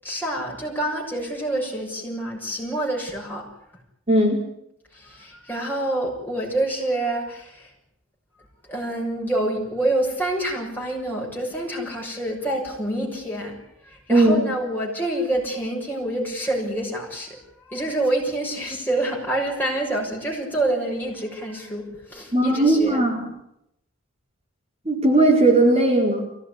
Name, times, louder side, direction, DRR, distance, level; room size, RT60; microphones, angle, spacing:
voice 1, 0.0-3.5 4.9-7.7 8.7-23.0, right 1 dB, 10° left, -2 dB, 6.6 m, -27 dB
voice 2, 4.1-4.4 14.1-14.4 22.3-23.2 24.8-26.2, right 2 dB, 30° right, -1 dB, 4.9 m, -17 dB
25.0 x 17.0 x 9.8 m, 0.79 s
head